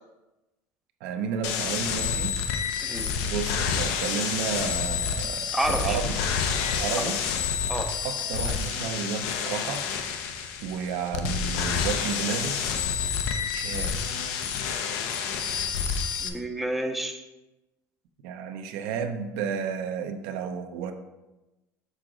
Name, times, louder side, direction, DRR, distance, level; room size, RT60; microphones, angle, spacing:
voice 1, 1.0-2.3 3.3-6.2 6.7-7.2 8.0-9.9 10.6-12.6 13.5-14.0 18.2-20.9, right 7 dB, 80° right, 6 dB, 0.7 m, -32 dB
sound 1, 1.4-16.3, left 6 dB, 90° left, 0.6 m, -29 dB
voice 2, 2.8-3.2 5.5-6.0 7.0-7.1 7.7-8.0 16.2-17.2, right 1 dB, ahead, 3 dB, 0.4 m, -30 dB
6.5 x 4.8 x 3.8 m, 1.0 s
cardioid pair, 160°, 7 cm